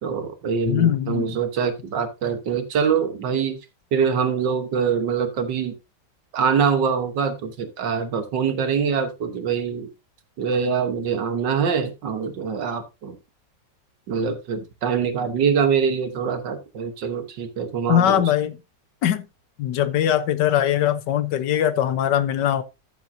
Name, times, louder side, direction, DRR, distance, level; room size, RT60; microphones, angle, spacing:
voice 1, 0.0-3.6 3.9-5.7 6.3-9.9 10.4-13.2 14.1-18.2, right 6 dB, 80° right, 1.9 m, -24 dB
voice 2, 0.6-1.4 17.9-18.6 19.0-19.3 19.6-22.6, left 11 dB, 75° left, 1.5 m, -21 dB
13.0 x 7.4 x 2.7 m
omnidirectional pair, 1.9 m